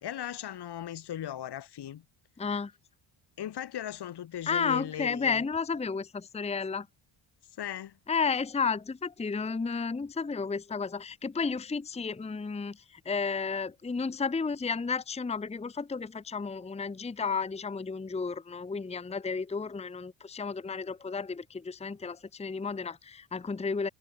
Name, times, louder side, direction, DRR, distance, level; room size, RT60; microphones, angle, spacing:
voice 1, 0.0-2.0 3.4-5.4 7.6-7.9, left 11 dB, 50° left, 2.1 m, -37 dB
voice 2, 2.4-2.7 4.5-6.9 8.1-23.9, left 5 dB, 15° left, 0.9 m, -32 dB
cardioid pair, 120°, 49 cm